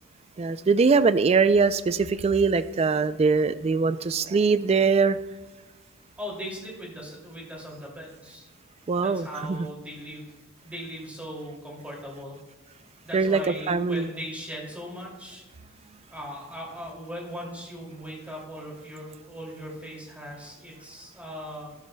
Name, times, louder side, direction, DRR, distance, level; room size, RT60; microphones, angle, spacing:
voice 1, 0.4-5.2 8.9-9.7 13.1-13.4 13.7-14.1, right 4 dB, 30° right, 14 dB, 0.3 m, -22 dB
voice 2, 6.2-8.5 9.0-10.3 10.6-12.4 13.0-15.4 16.1-21.7, equal, 5° right, -3 dB, 2.5 m, -39 dB
13.0 x 12.5 x 2.2 m, 1.2 s
head